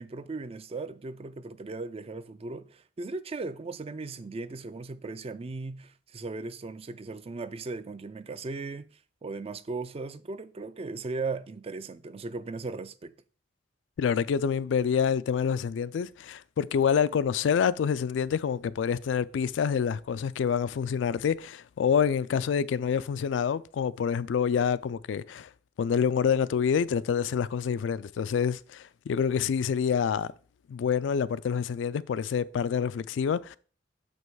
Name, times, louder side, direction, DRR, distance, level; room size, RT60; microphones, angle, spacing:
voice 1, 0.0-8.9 9.2-13.1, right 3 dB, 35° right, 0.4 m, -37 dB
voice 2, 14.0-25.5 25.8-30.3 30.7-33.6, left 7 dB, 80° left, 0.3 m, -27 dB
6.2 x 5.3 x 4.6 m
head